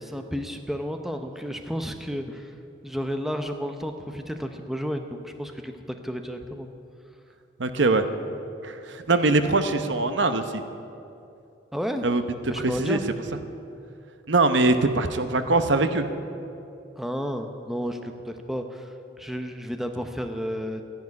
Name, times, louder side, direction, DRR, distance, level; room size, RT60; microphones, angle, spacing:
voice 1, 0.0-2.5 2.8-6.7 11.7-12.1 12.5-13.1 17.0-20.8, equal, ahead, 5 dB, 0.8 m, -32 dB
voice 2, 7.6-8.0 8.6-10.6 12.0-12.2 12.6-13.0 14.3-16.1, right 2 dB, 70° right, 9 dB, 0.9 m, -22 dB
13.5 x 10.5 x 9.7 m, 2.7 s
head